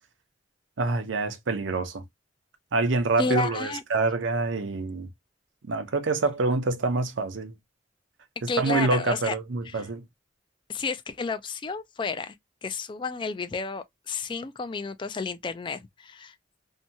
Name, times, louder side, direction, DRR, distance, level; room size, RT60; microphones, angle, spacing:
voice 1, 0.8-2.0 2.7-5.1 5.7-7.5 8.6-10.0, right 3 dB, 80° right, 0.6 m, -26 dB
voice 2, 3.2-3.8 8.5-9.3 9.6-9.9 10.7-12.4 12.6-16.4, left 4 dB, 25° left, 0.3 m, -31 dB
2.7 x 2.2 x 2.6 m
head